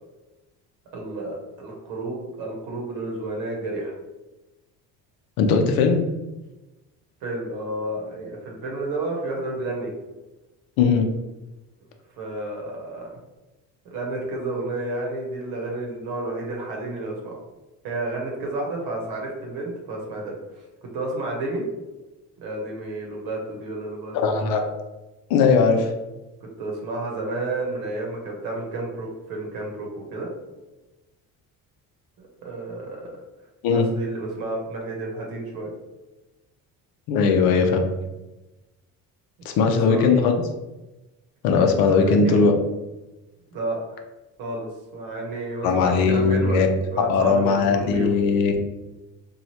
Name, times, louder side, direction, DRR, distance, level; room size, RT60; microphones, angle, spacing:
voice 1, 0.9-3.9 7.2-9.9 12.2-13.2 13.8-17.4 17.8-20.6 20.9-21.7 22.4-24.4 26.4-30.3 32.2-33.2 33.7-35.7 39.5-40.3 41.9-42.5 43.5-44.0 44.4-48.1, right 2 dB, 85° right, -1 dB, 0.9 m, -31 dB
voice 2, 5.4-6.0 10.8-11.1 24.2-24.6 25.3-25.9 33.6-33.9 37.1-37.8 39.5-40.3 41.4-42.5 45.6-46.7 47.1-48.6, left 5 dB, 75° left, 4 dB, 0.6 m, -19 dB
3.1 x 2.3 x 2.8 m, 1.1 s
cardioid pair, 115°, 35 cm